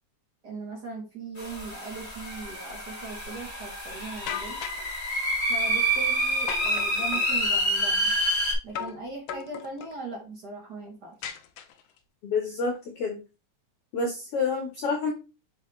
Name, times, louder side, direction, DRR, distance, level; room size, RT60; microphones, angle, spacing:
voice 1, 0.4-4.7 5.5-8.2 8.6-11.2, right 3 dB, 65° right, 1 dB, 1.0 m, -39 dB
sound 1, 1.4-8.5, right 1 dB, 25° left, 2.3 m, -28 dB
sound 2, 4.3-4.9 6.5-7.4 8.7-9.0 9.3-10.0 11.2-12.0, left 9 dB, 90° left, 1.3 m, -37 dB
voice 2, 12.2-13.2 13.9-15.1, left 4 dB, 60° left, 3 dB, 1.7 m, -28 dB
6.9 x 4.9 x 3.1 m, 0.30 s
omnidirectional pair, 3.5 m